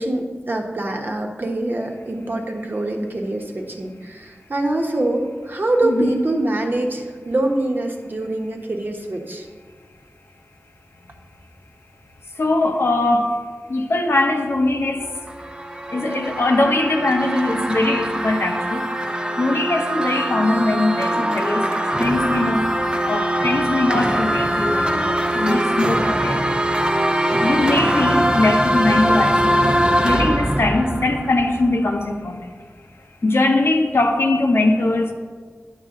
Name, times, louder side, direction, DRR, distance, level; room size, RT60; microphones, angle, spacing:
voice 1, 0.0-9.5, right 1 dB, 45° right, 1 dB, 1.1 m, -24 dB
voice 2, 5.8-6.2 12.4-13.3 13.7-15.1 15.9-18.8 19.4-22.7 23.0-26.4 27.4-32.5 33.2-35.1, left 2 dB, 60° left, 4 dB, 0.8 m, -21 dB
sound 1, 15.0-32.0, right 1 dB, 20° right, 0.6 m, -22 dB
9.3 x 6.5 x 3.7 m, 1.5 s
wide cardioid pair, 65°, 5 cm